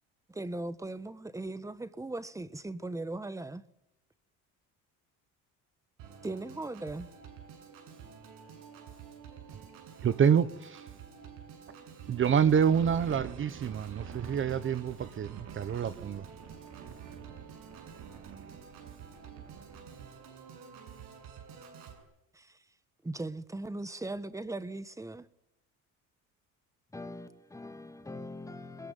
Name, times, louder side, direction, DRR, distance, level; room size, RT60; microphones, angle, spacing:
voice 1, 0.3-3.6 6.2-7.1 22.3-22.6 23.0-25.3, right 2 dB, 10° right, 1.3 m, -38 dB
Organ, 6.0-22.0, right 7 dB, 85° right, 7.7 m, -49 dB
voice 2, 10.0-10.9 12.1-16.3, right 7 dB, 35° right, 1.1 m, -27 dB
sound 1, 12.2-19.8, right 7 dB, 55° right, 4.1 m, -48 dB
voice 3, 26.9-28.9, left 2 dB, 10° left, 2.7 m, -43 dB
21.5 x 21.5 x 9.3 m
cardioid pair, 130°, 34 cm